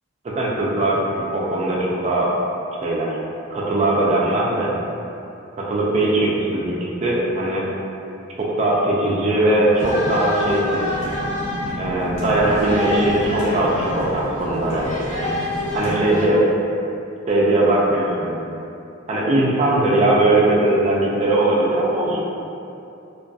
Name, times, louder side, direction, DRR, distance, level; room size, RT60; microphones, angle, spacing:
voice 1, 0.2-2.3 2.8-3.2 3.5-4.7 5.6-7.6 8.4-10.9 11.8-14.9 15.7-16.4 17.3-18.3 19.1-22.2, right 1 dB, 30° right, -4 dB, 0.3 m, -20 dB
sound 1, 9.7-16.2, left 1 dB, 35° left, 0.8 m, -26 dB
2.6 x 2.2 x 2.3 m, 2.7 s
head